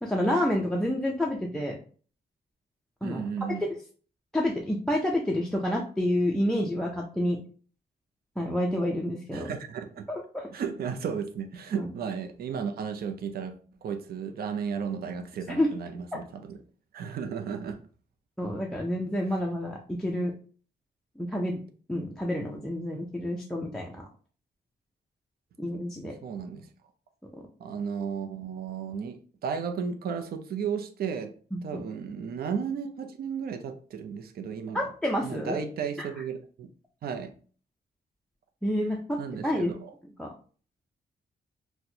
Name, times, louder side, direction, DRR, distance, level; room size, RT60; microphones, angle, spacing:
voice 1, 0.0-1.8 3.0-3.3 3.6-3.7 4.3-7.4 8.4-9.5 10.1-10.5 11.8-11.9 15.5-15.7 18.4-20.3 21.2-21.6 21.9-23.9 25.6-26.1 31.5-31.8 34.7-35.6 36.0-36.1 38.6-39.2 39.4-39.7 40.2-40.3, left 1 dB, 5° left, 0 dB, 0.4 m, -28 dB
voice 2, 3.0-3.6 9.3-10.1 10.5-16.6 16.9-17.8 26.0-26.7 27.6-31.3 31.6-34.9 35.2-36.7 37.0-37.3 39.2-39.9, right 6 dB, 60° right, 6 dB, 0.5 m, -34 dB
4.2 x 2.1 x 2.7 m, 0.42 s
wide cardioid pair, 145°, 18 cm